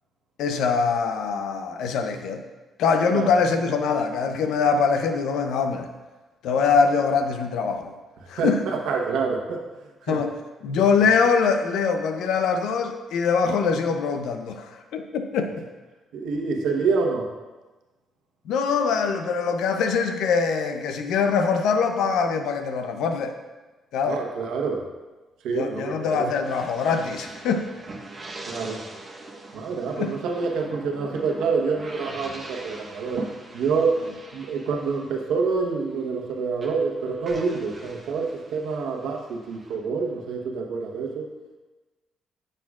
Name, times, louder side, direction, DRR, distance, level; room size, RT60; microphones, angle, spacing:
voice 1, 0.4-2.4 2.8-5.9 6.4-7.9 8.3-8.6 10.1-10.3 10.6-15.7 18.5-23.3 23.9-24.2 25.5-27.7 30.0-30.1, left 5 dB, 85° left, 7 dB, 0.7 m, -23 dB
voice 2, 8.4-9.6 10.0-10.2 11.0-11.1 16.1-17.3 24.0-24.9 25.4-26.3 28.5-28.8 29.5-34.0 34.3-41.3, right 4 dB, 85° right, 1 dB, 1.1 m, -27 dB
sound 1, 26.4-36.3 36.6-40.4, right 2 dB, 35° right, 1.3 m, -43 dB
9.6 x 6.7 x 2.4 m, 1.2 s
cardioid pair, 90°, 0 cm